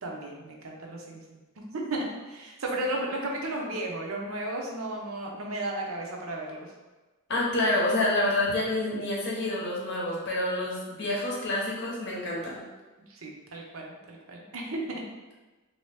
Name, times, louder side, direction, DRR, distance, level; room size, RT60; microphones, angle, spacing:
voice 1, 0.0-6.7 8.5-8.6 13.1-15.0, right 1 dB, 70° right, -1 dB, 0.7 m, -34 dB
voice 2, 7.3-12.6, left 1 dB, 55° left, -4 dB, 0.9 m, -28 dB
3.1 x 2.8 x 3.3 m, 1.2 s
head